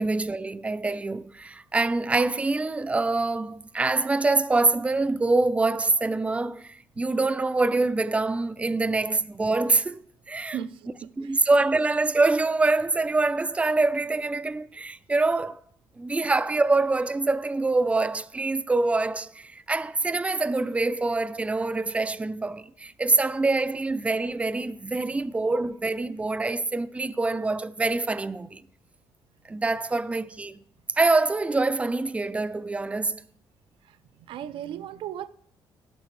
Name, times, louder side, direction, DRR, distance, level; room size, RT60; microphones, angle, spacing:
voice 1, 0.0-10.6 11.2-15.6 16.0-28.6 29.5-30.6 30.9-33.2, right 3 dB, 15° right, 0.4 m, -25 dB
voice 2, 10.5-11.5 33.8-35.3, right 10 dB, 75° right, 0.5 m, -37 dB
16.5 x 6.3 x 3.2 m
cardioid pair, 85°, 9 cm